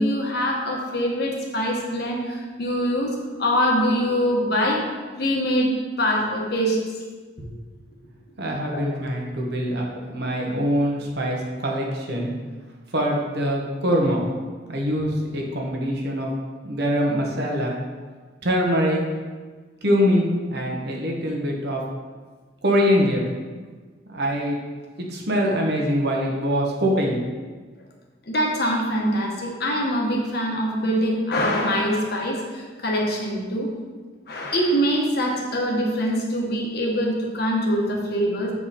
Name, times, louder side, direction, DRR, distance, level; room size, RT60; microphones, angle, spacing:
voice 1, 0.0-3.1 3.4-4.8 5.2-5.7 6.0-6.8 7.4-7.5 8.7-8.8 28.3-33.7 34.3-38.5, equal, 55° left, -1 dB, 1.3 m, -23 dB
voice 2, 8.4-12.3 12.9-14.2 14.7-16.3 16.6-17.7 18.4-19.0 19.8-21.8 22.6-23.3 24.1-24.6 25.0-27.2, equal, 60° right, -1 dB, 1.2 m, -23 dB
7.5 x 4.8 x 4.2 m, 1.4 s
head